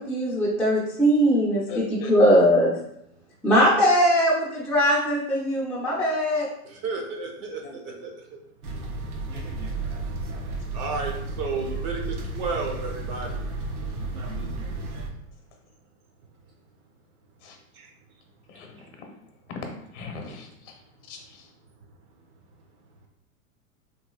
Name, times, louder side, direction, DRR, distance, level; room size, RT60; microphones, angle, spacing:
voice 1, 0.0-2.7 3.4-6.5, equal, ahead, -7 dB, 0.5 m, -20 dB
voice 2, 1.7-2.1 7.6-7.8 17.4-17.6 18.5-19.1 19.5-19.6 19.9-20.8 21.1-21.5, left 4 dB, 55° left, 3 dB, 0.9 m, -40 dB
voice 3, 6.6-8.1 10.7-13.4 17.7-17.9, right 4 dB, 45° right, 2 dB, 0.7 m, -32 dB
sound 1, 8.6-15.1, right 2 dB, 90° right, 0.7 m, -32 dB
3.1 x 3.0 x 2.3 m, 0.77 s
hypercardioid pair, 105°, 43 cm